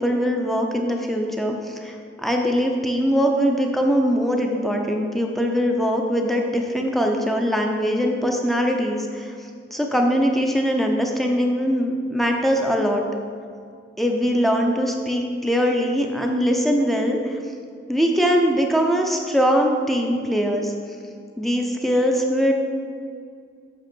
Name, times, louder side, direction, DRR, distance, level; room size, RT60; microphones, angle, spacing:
voice 1, 0.0-9.3 9.7-13.0 14.0-17.4 17.9-20.7 21.4-22.5, equal, ahead, 2 dB, 0.6 m, -21 dB
7.9 x 6.3 x 4.4 m, 2.3 s
head